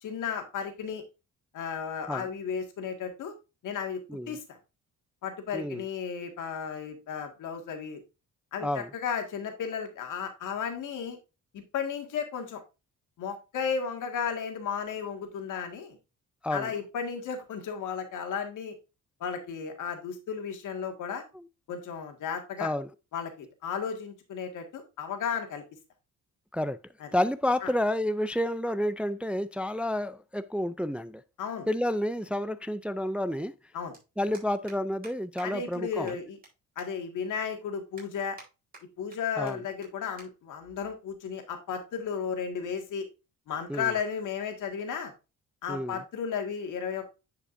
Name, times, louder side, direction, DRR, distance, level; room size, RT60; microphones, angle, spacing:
voice 1, 0.0-1.0 1.5-3.3 3.6-4.0 4.3-4.6 5.2-8.0 8.5-11.2 11.5-12.6 13.2-16.0 16.5-18.8 19.2-21.2 21.7-22.7 23.1-25.6 27.0-27.1 27.6-27.7 31.4-31.7 33.7-33.9 35.4-36.4 36.8-38.4 39.0-43.1 43.5-45.1 45.6-47.1, left 6 dB, 80° left, 1.9 m, -34 dB
voice 2, 5.5-5.8 8.6-8.9 16.4-16.7 22.6-22.9 26.5-26.8 27.1-31.2 31.7-33.5 34.2-36.2 39.4-39.6 43.7-43.9 45.7-46.0, left 1 dB, 5° right, 0.3 m, -30 dB
sound 1, 33.9-34.0 34.3-34.8 35.0-35.1 35.4-35.5 35.7-35.8 36.1-36.5 36.8-36.9 37.3-37.4 38.0-38.5 38.7-39.2 39.5-39.6 39.8-39.9 40.2-40.3 40.6-40.8 41.6-41.9, right 3 dB, 30° right, 4.0 m, -49 dB
9.9 x 5.1 x 2.6 m
cardioid pair, 105°, 31 cm